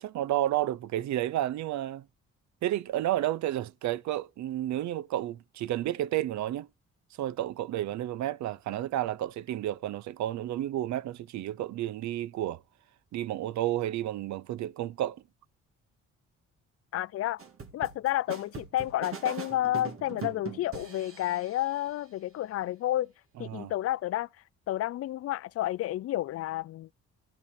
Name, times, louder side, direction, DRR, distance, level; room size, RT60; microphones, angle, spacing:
voice 1, 0.0-2.1 2.6-6.7 7.2-12.6 13.1-15.2 23.4-23.7, right 13 dB, 65° right, 0.5 m, -31 dB
voice 2, 16.9-17.4 17.7-23.1 23.4-24.3 24.7-26.9, left 14 dB, 50° left, 0.4 m, -30 dB
sound 1, 17.4-21.7, right 5 dB, 45° right, 2.0 m, -41 dB
14.0 x 5.6 x 4.3 m
cardioid pair, 90°, 30 cm